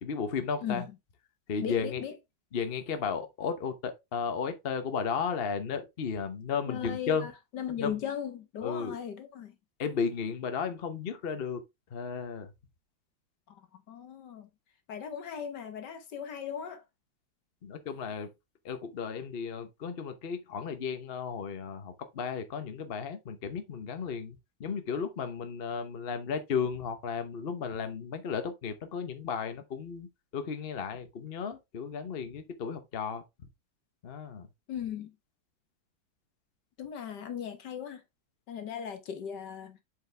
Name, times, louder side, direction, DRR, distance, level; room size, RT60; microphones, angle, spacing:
voice 1, 0.0-0.8 1.5-2.0 2.5-7.3 7.8-7.9 8.6-9.0 9.8-11.6 11.9-12.5 17.6-18.3 18.6-30.1 30.3-33.2 34.0-34.5, left 6 dB, 45° left, 0.8 m, -34 dB
voice 2, 0.6-1.0 1.6-2.1 6.7-9.6 13.5-14.5 14.9-16.8 34.7-35.1 36.8-38.0 38.5-39.8, left 8 dB, 65° left, 1.7 m, -38 dB
7.7 x 4.8 x 3.3 m
omnidirectional pair, 2.1 m